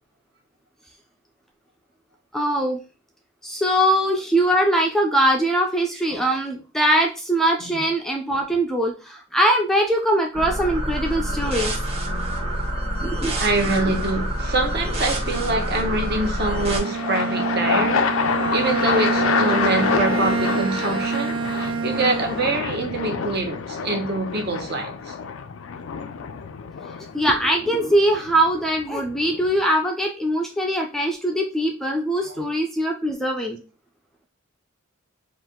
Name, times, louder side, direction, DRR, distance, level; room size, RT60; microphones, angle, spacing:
voice 1, 2.3-2.8 3.4-11.8 13.0-13.3 27.1-33.6, right 1 dB, ahead, 0.4 m, -22 dB
sound 1, 10.3-16.8, right 1 dB, 30° right, 1.0 m, -27 dB
sound 2, 10.7-11.2 15.0-29.6, left 6 dB, 85° left, 0.4 m, -28 dB
voice 2, 13.4-18.2 18.5-25.1, right 2 dB, 50° right, 0.9 m, -25 dB
Bowed string instrument, 16.7-22.8, right 6 dB, 80° right, 0.3 m, -26 dB
4.4 x 2.5 x 3.7 m
head